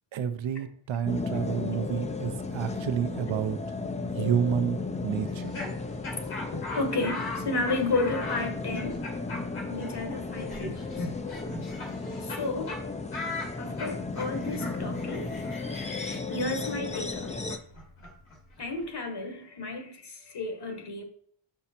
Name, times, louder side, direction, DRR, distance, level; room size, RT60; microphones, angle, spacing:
voice 1, 0.1-3.6 4.1-5.5, right 8 dB, 70° right, 0.7 m, -29 dB
sound 1, 1.1-17.6, left 3 dB, 15° left, 0.4 m, -35 dB
Laughter, 5.2-12.4 12.7-12.8 13.1-18.8, left 2 dB, 75° left, 2.5 m, -39 dB
voice 2, 6.5-9.0 9.6-11.1 12.2-12.8 13.6-15.4 16.3-17.5 18.6-21.0, left 3 dB, 55° left, 1.4 m, -32 dB
5.5 x 5.0 x 4.4 m
cardioid pair, 80°, 49 cm